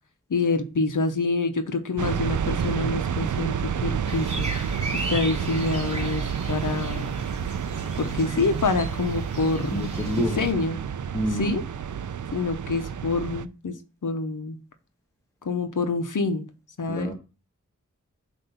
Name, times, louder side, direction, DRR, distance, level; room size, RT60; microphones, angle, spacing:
voice 1, 0.3-4.5 4.9-7.1 8.0-9.9 10.2-10.8 11.3-11.6 12.3-13.7 14.0-14.6 15.4-16.5 16.8-17.1, left 3 dB, 80° left, 8 dB, 0.8 m, -26 dB
sound 1, 2.0-13.5, right 7 dB, 70° right, 0.5 m, -29 dB
sound 2, 4.1-10.5, right 1 dB, 20° right, 2.3 m, -37 dB
voice 2, 9.7-10.5 11.1-11.6 16.9-17.1, right 1 dB, 10° left, 0 dB, 1.1 m, -27 dB
7.8 x 2.7 x 5.5 m, 0.32 s
wide cardioid pair, 55°, 31 cm